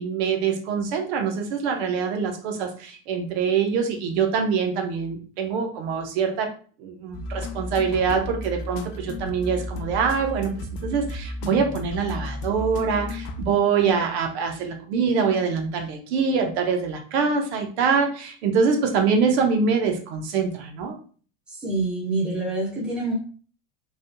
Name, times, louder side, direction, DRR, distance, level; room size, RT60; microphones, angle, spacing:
voice 1, 0.0-6.5 6.8-10.5 10.8-21.0, right 5 dB, 60° right, 3 dB, 1.0 m, -24 dB
sound 1, 7.1-13.9, left 1 dB, 45° left, 0.5 m, -33 dB
voice 2, 21.5-23.1, right 2 dB, 5° right, -5 dB, 0.8 m, -26 dB
4.0 x 3.4 x 2.3 m, 0.41 s
supercardioid pair, 170°, 36 cm